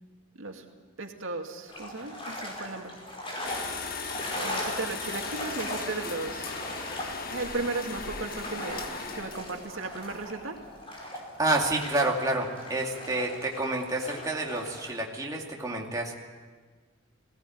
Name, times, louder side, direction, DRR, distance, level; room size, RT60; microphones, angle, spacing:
voice 1, 0.3-0.7 1.0-3.0 4.3-6.6 7.3-8.9 9.1-10.6, right 3 dB, 90° right, 3 dB, 2.3 m, -35 dB
sound 1, 1.7-14.9, left 1 dB, 30° left, 5.2 m, -39 dB
sound 2, 3.4-10.8, left 4 dB, 50° left, 1.5 m, -38 dB
voice 2, 11.4-16.1, right 2 dB, 20° right, -1 dB, 2.4 m, -29 dB
20.0 x 17.0 x 9.4 m, 1.5 s
head